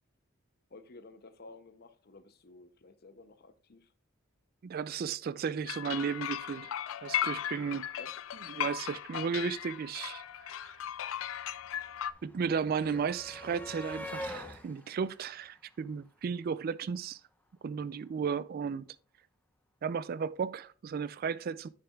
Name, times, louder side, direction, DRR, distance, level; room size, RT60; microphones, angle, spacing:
voice 1, 0.7-3.9 8.0-8.1, left 3 dB, 50° left, 0.7 m, -53 dB
voice 2, 4.6-6.7 7.0-7.9 8.6-10.8 12.2-17.2 17.6-18.9 19.8-21.7, right 6 dB, 50° right, 0.3 m, -34 dB
sound 1, 5.7-12.1, left 10 dB, 80° left, 0.4 m, -37 dB
sound 2, 10.0-10.1 10.3-16.4 17.6-17.8 18.0-18.2, equal, 10° left, 0.9 m, -46 dB
9.1 x 6.6 x 2.3 m
head